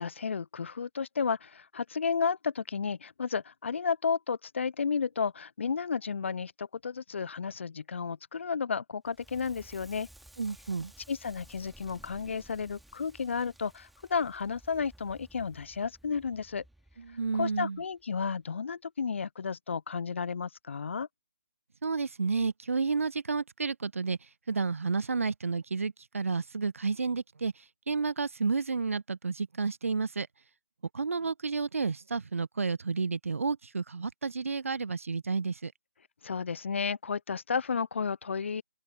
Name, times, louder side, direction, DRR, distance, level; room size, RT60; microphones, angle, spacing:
voice 1, 0.0-10.1 11.1-16.6 17.3-21.1 36.2-38.6, left 5 dB, 50° left, 0.6 m, -32 dB
Crackle, 9.0-18.0, right 1 dB, ahead, 2.4 m, -56 dB
voice 2, 10.4-10.9 17.0-17.8 21.8-24.2 24.5-30.3 30.9-35.7, right 4 dB, 60° right, 1.0 m, -31 dB
figure-of-eight pair, 145°, 8 cm